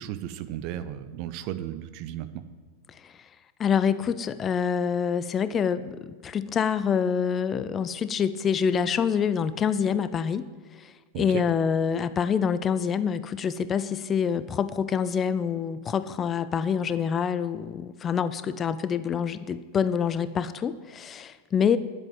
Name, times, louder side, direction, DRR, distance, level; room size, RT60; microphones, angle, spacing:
voice 1, 0.0-2.3 11.1-11.4, right 12 dB, 45° right, 11 dB, 0.9 m, -34 dB
voice 2, 3.6-10.5 10.8-21.8, left 7 dB, 25° left, 14 dB, 0.5 m, -26 dB
10.5 x 7.8 x 9.1 m, 1.5 s
figure-of-eight pair, 90°, 0 cm